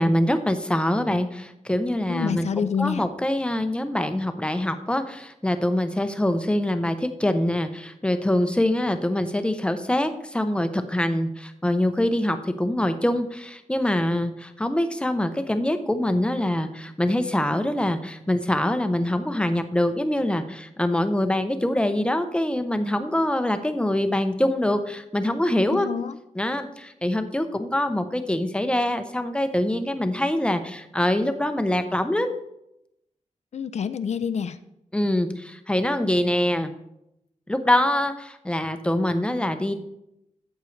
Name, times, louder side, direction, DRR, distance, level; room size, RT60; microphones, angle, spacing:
voice 1, 0.0-25.9 26.4-32.3 34.9-36.7 37.5-39.7, left 1 dB, 10° left, 8 dB, 0.6 m, -24 dB
voice 2, 2.1-3.0 25.7-26.2 33.5-34.6, left 7 dB, 60° left, 12 dB, 0.4 m, -27 dB
13.5 x 8.1 x 3.2 m, 0.84 s
wide cardioid pair, 160°, 13 cm